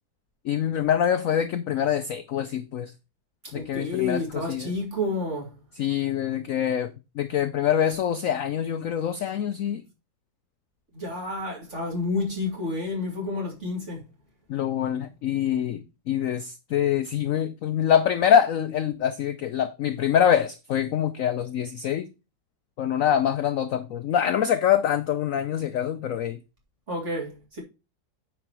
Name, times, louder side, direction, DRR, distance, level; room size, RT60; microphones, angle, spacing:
voice 1, 0.4-2.9 3.5-4.7 5.8-9.8 14.5-22.1 22.8-26.4, left 9 dB, 75° left, 0.7 m, -25 dB
voice 2, 3.5-5.5 10.9-14.0 26.9-27.6, left 2 dB, 40° right, 2.6 m, -30 dB
9.2 x 4.9 x 4.7 m
omnidirectional pair, 2.0 m